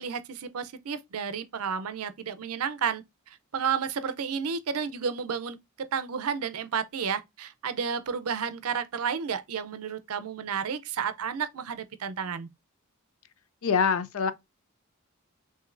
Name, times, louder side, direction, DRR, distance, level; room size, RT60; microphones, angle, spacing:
voice 1, 0.0-12.5, right 6 dB, 85° right, 0.5 m, -32 dB
voice 2, 13.6-14.3, left 6 dB, 70° left, 0.5 m, -24 dB
6.1 x 2.7 x 2.5 m
head